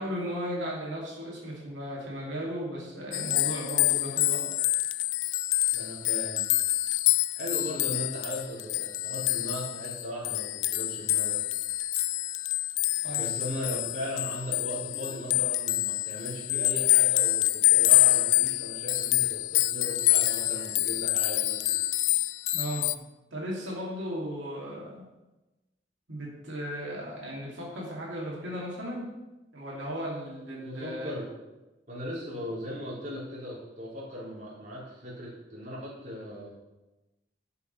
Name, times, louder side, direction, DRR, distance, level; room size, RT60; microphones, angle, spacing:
voice 1, 0.0-4.4 13.0-13.3 22.5-22.9 23.3-25.0 26.1-29.1 29.5-31.1, equal, 90° right, -4 dB, 2.5 m, -36 dB
sound 1, 3.1-23.0, left 17 dB, 90° left, 0.4 m, -26 dB
voice 2, 5.7-6.5 7.3-11.4 13.2-21.8 30.6-31.3 31.9-36.5, equal, 40° right, -7 dB, 3.7 m, -38 dB
11.0 x 5.7 x 5.4 m, 1.0 s
head